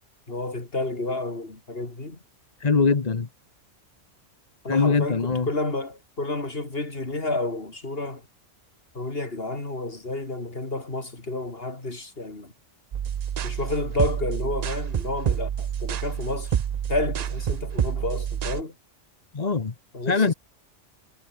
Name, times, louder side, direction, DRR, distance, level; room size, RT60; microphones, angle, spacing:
voice 1, 0.3-2.2 4.6-8.2 8.9-12.5 13.4-16.6 16.9-18.8 19.9-20.3, left 2 dB, 50° left, 3.8 m, -30 dB
voice 2, 2.6-3.3 4.7-5.5 19.3-19.7 20.0-20.3, left 4 dB, 35° left, 1.2 m, -22 dB
sound 1, 12.9-18.6, right 9 dB, 55° right, 0.4 m, -28 dB
omnidirectional pair, 1.3 m